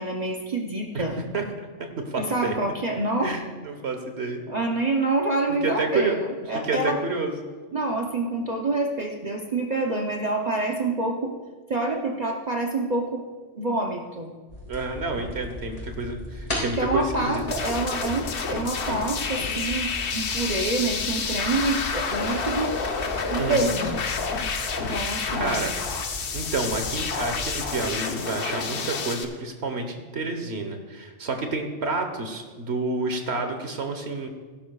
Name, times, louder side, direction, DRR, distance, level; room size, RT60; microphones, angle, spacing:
voice 1, 0.0-1.2 2.2-3.4 4.5-6.2 6.5-7.0 7.7-11.3 11.7-13.2 13.5-14.3 15.1-15.3 16.7-22.7 23.3-24.0 24.8-25.6, right 2 dB, 40° right, 0 dB, 0.8 m, -27 dB
voice 2, 1.3-2.6 3.2-4.4 5.5-6.2 6.4-7.3 14.7-17.4 23.3-23.7 24.9-25.8 26.3-34.3, right 3 dB, 65° right, 5 dB, 1.4 m, -29 dB
sound 1, 14.5-27.8, equal, 30° left, 4.1 m, -37 dB
sound 2, 17.5-29.2, left 5 dB, 55° left, 1.0 m, -29 dB
17.0 x 11.5 x 2.4 m, 1.4 s
omnidirectional pair, 1.2 m